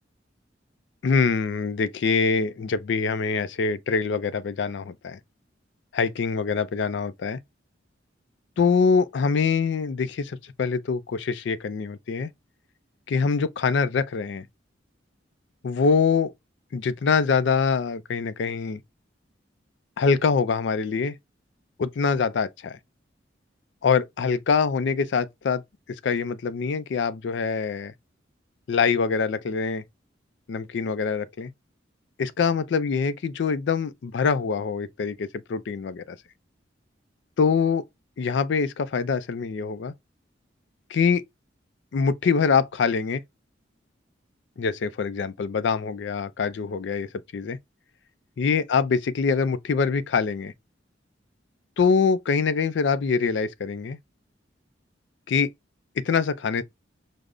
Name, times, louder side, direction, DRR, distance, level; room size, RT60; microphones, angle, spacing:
voice 1, 1.0-5.2 5.9-7.4 8.6-12.3 13.1-14.4 15.6-16.3 16.7-18.8 20.0-21.1 21.8-22.8 23.8-25.6 26.0-27.9 28.7-29.8 30.5-31.5 32.2-36.2 37.4-37.8 38.2-39.9 40.9-41.2 41.9-43.2 44.6-47.6 48.4-50.5 51.8-54.0 55.3-55.5 56.0-56.6, left 5 dB, 70° left, 0.4 m, -24 dB
5.1 x 2.0 x 2.3 m
head